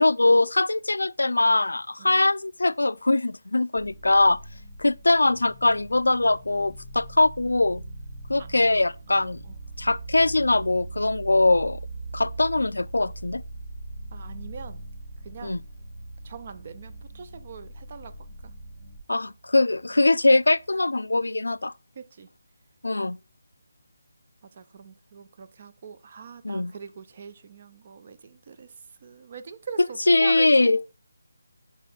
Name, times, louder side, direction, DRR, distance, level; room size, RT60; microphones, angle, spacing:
voice 1, 0.0-4.4 4.8-7.8 8.3-9.4 9.8-11.8 12.1-13.4 15.4-15.6 19.1-21.7 22.8-23.2 26.4-26.7 30.1-30.8, left 2 dB, 85° left, 0.3 m, -22 dB
sound 1, 3.8-19.0, equal, 65° right, 1.7 m, -44 dB
sound 2, 5.2-20.7, right 4 dB, 5° right, 1.2 m, -44 dB
voice 2, 9.1-9.5 14.1-14.8 15.2-15.6 16.2-18.5 21.9-22.3 24.4-28.7 29.0-30.7, right 6 dB, 40° right, 0.6 m, -42 dB
7.3 x 3.5 x 3.8 m
figure-of-eight pair, 160°, 0 cm